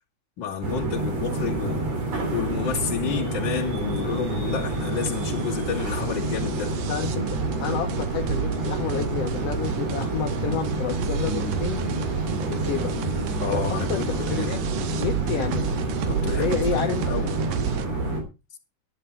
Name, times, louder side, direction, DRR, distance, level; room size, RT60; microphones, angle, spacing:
voice 1, 0.4-1.9 2.3-6.7 13.4-14.5 16.1-17.4, left 7 dB, 40° left, 2.8 m, -30 dB
sound 1, 0.6-18.2, right 2 dB, 55° right, 4.4 m, -28 dB
sound 2, 4.6-17.9, right 9 dB, 80° right, 2.5 m, -32 dB
voice 2, 6.9-7.2 7.6-11.8 12.5-12.9 13.5-14.6 15.0-15.7 16.3-17.1, left 8 dB, 65° left, 1.8 m, -30 dB
11.0 x 11.0 x 4.5 m
omnidirectional pair, 3.5 m